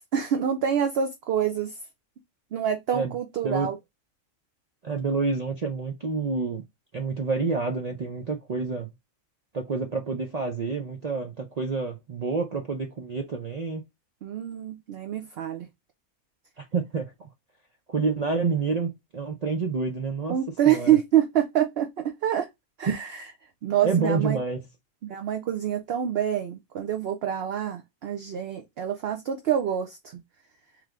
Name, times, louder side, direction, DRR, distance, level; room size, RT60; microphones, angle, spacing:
voice 1, 0.1-1.7 2.5-3.8 14.2-15.7 20.3-22.5 22.8-23.1 23.6-24.4 25.0-30.2, right 10 dB, 60° right, 0.7 m, -26 dB
voice 2, 4.8-6.6 6.9-8.9 9.5-13.8 16.6-17.3 17.9-20.4 20.7-21.0 23.8-24.7, right 4 dB, 90° right, 0.3 m, -28 dB
3.3 x 3.1 x 3.6 m
omnidirectional pair, 1.5 m